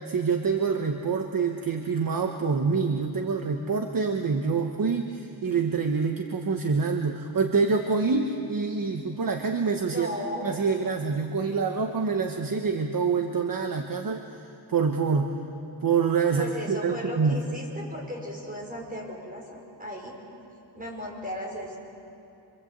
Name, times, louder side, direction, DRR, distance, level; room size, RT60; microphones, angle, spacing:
voice 1, 0.0-10.1 10.4-14.2 14.7-15.3 15.8-17.4, right 5 dB, 45° right, 4 dB, 1.2 m, -26 dB
voice 2, 9.9-10.5 16.4-20.2 20.7-21.8, left 1 dB, 20° right, -1 dB, 5.6 m, -36 dB
27.0 x 25.0 x 8.1 m, 2.7 s
wide cardioid pair, 160°, 46 cm